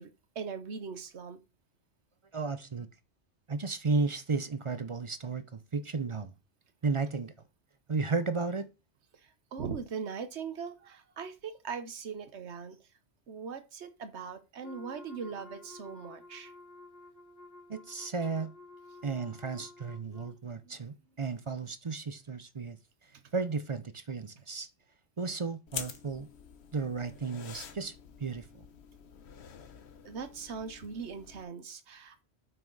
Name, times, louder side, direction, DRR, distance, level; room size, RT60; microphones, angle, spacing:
voice 1, 0.0-1.4 9.1-12.8 13.3-16.5 20.6-20.8 30.0-32.2, right 6 dB, 85° right, 1.3 m, -40 dB
voice 2, 2.3-2.9 3.5-6.3 6.8-7.3 7.9-8.7 17.7-18.5 19.0-22.8 23.3-24.7 25.2-26.3 26.7-27.9 28.2-28.5, right 4 dB, 35° right, 0.5 m, -33 dB
Wind instrument woodwind instrument, 14.6-20.4, left 2 dB, 40° left, 1.4 m, -52 dB
sound 1, 25.7-31.4, left 7 dB, 75° left, 1.1 m, -47 dB
9.0 x 6.1 x 3.9 m
omnidirectional pair, 1.1 m